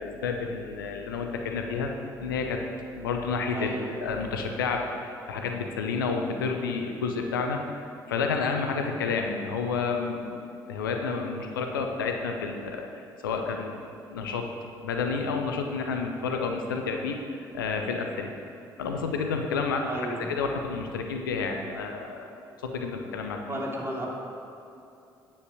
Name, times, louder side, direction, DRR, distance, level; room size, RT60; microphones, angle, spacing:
voice 1, 0.0-1.9 2.2-2.7 2.9-14.5 14.8-18.3 18.8-22.3 22.6-23.6, left 4 dB, 85° left, 3 dB, 0.7 m, -30 dB
voice 2, 3.5-3.9 19.9-20.3 23.5-24.1, right 1 dB, 25° right, -3 dB, 2.7 m, -33 dB
9.6 x 7.2 x 7.0 m, 2.7 s
figure-of-eight pair, 45°, 11 cm